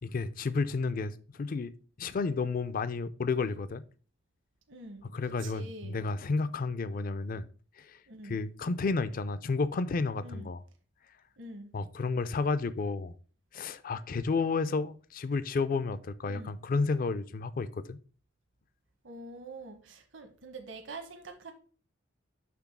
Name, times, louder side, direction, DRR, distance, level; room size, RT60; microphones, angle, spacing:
voice 1, 0.0-1.7 2.0-3.8 5.1-7.4 7.8-8.0 8.2-10.6 11.7-13.2 13.5-18.0, left 4 dB, 45° left, 0.4 m, -31 dB
voice 2, 4.7-5.0 5.4-6.0 8.1-8.4 10.2-10.5 11.4-11.7 16.2-16.5 19.0-21.5, right 2 dB, 65° right, 0.9 m, -45 dB
6.0 x 3.5 x 5.9 m
head